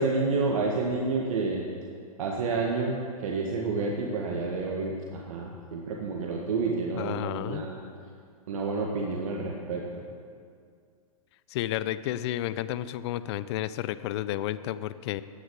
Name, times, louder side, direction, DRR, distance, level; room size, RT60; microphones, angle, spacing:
voice 1, 0.0-1.7 2.2-7.8 8.5-10.0, right 3 dB, 60° right, -1 dB, 1.7 m, -29 dB
voice 2, 7.0-7.6 11.5-15.2, left 13 dB, 45° left, 15 dB, 0.6 m, -31 dB
17.0 x 9.8 x 4.8 m, 2.2 s
hypercardioid pair, 125°, 19 cm